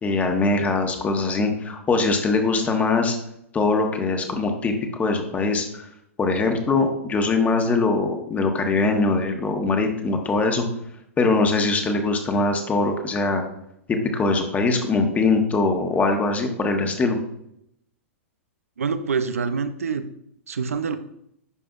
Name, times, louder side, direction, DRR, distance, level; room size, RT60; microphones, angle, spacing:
voice 1, 0.0-3.2 3.5-5.9 6.2-10.6 11.2-13.4 13.9-17.2, left 3 dB, 20° left, 4 dB, 1.2 m, -22 dB
voice 2, 18.8-20.0 20.5-21.0, right 5 dB, 80° right, 11 dB, 0.6 m, -26 dB
11.0 x 4.9 x 2.5 m, 0.75 s
hypercardioid pair, 105°, 8 cm